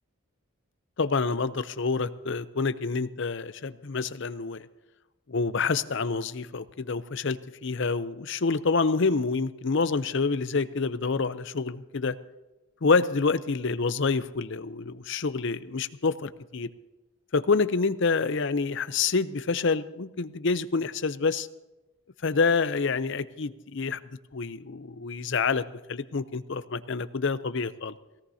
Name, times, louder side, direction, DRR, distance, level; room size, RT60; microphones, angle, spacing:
voice 1, 1.0-4.7 5.3-12.1 12.8-16.7 17.3-21.5 22.2-24.0 24.3-25.6 25.9-28.0, left 4 dB, 55° left, 13 dB, 0.6 m, -27 dB
19.5 x 17.5 x 2.8 m, 1.0 s
head